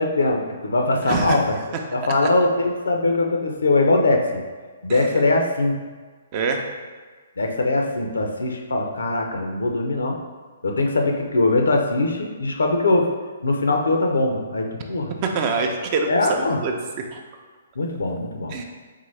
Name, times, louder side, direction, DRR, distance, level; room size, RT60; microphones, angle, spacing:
voice 1, 0.0-1.5 1.9-4.4 4.8-5.8 7.4-10.2 10.6-13.1 13.4-15.1 16.1-16.6 17.8-18.6, left 2 dB, 75° left, 2 dB, 0.6 m, -21 dB
voice 2, 1.1-1.4 4.9-5.1 6.3-6.6 15.2-16.7 17.1-17.2 18.5-18.6, right 4 dB, 35° right, 3 dB, 0.5 m, -24 dB
3.7 x 3.6 x 3.2 m, 1.4 s
figure-of-eight pair, 130°, 0 cm